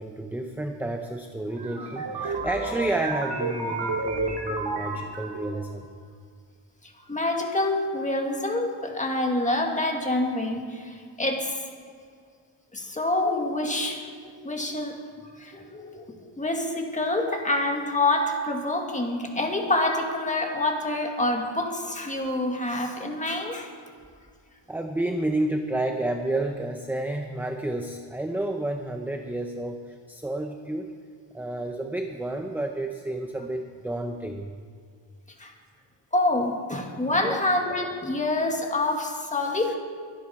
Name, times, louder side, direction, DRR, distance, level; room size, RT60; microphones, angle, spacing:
voice 1, 0.0-5.9 24.7-30.9 31.3-34.6 37.2-37.4, right 1 dB, 5° right, 4 dB, 0.5 m, -30 dB
sound 1, 1.5-5.7, right 3 dB, 55° right, 2.3 m, -31 dB
voice 2, 6.8-11.6 12.7-15.0 15.3-23.7 35.4-35.5 36.1-39.8, left 2 dB, 15° left, 2 dB, 1.7 m, -27 dB
23.5 x 11.0 x 4.3 m, 2.2 s
wide cardioid pair, 175°, 47 cm